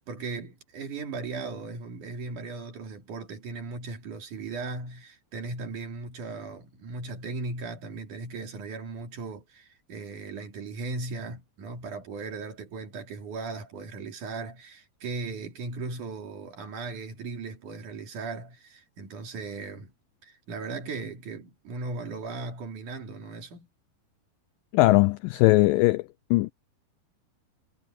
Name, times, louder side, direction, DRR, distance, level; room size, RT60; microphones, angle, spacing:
voice 1, 0.0-19.9 20.2-23.7, right 3 dB, 55° right, 4.2 m, -37 dB
voice 2, 24.7-26.0 26.3-26.5, left 20 dB, 90° left, 1.9 m, -20 dB
omnidirectional pair, 4.5 m